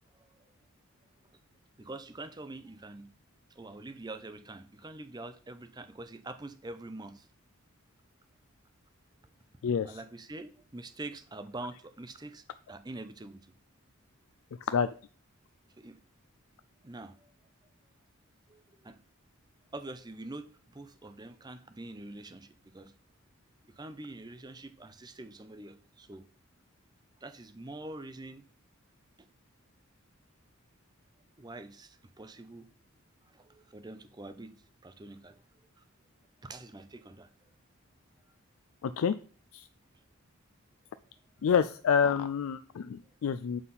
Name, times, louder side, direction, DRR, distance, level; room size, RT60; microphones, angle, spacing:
voice 1, 1.8-3.1 3.6-7.3 9.8-13.5 15.8-16.0 16.8-17.3 18.5-19.0 19.7-22.9 23.7-26.2 27.2-28.4 29.2-29.3 31.4-32.7 33.3-34.5 34.8-35.4 35.8-35.9 36.4-37.3, right 2 dB, 20° right, 11 dB, 0.5 m, -45 dB
voice 2, 9.6-10.0 14.6-14.9 38.8-39.1 39.5-39.7 41.4-43.6, left 7 dB, 70° left, 12 dB, 0.3 m, -28 dB
7.6 x 4.0 x 5.6 m, 0.42 s
head